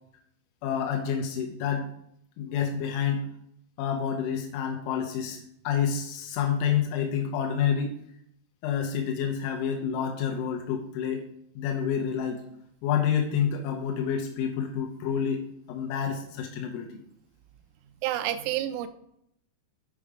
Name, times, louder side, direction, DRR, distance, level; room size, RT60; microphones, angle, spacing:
voice 1, 0.6-1.9 2.4-3.2 3.8-5.4 5.6-7.9 8.6-11.2 11.6-12.4 12.8-15.4 15.7-16.9, left 8 dB, 85° left, 2 dB, 3.3 m, -28 dB
voice 2, 18.0-18.9, right 13 dB, 85° right, 9 dB, 3.0 m, -29 dB
8.5 x 4.8 x 5.0 m, 0.73 s
omnidirectional pair, 5.4 m